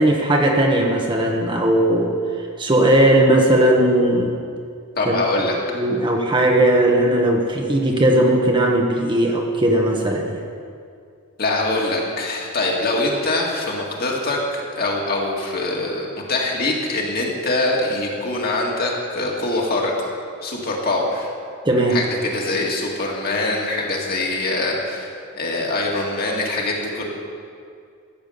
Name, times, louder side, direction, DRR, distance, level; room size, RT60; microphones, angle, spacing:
voice 1, 0.0-2.1 2.6-4.4 5.1-5.2 5.7-10.4 21.6-22.0, right 1 dB, 20° right, 0 dB, 1.1 m, -17 dB
voice 2, 5.0-5.5 11.4-20.1 20.4-21.3 21.9-25.1 25.3-27.0, left 2 dB, 45° left, -2 dB, 2.1 m, -23 dB
14.0 x 7.2 x 8.0 m, 2.3 s
head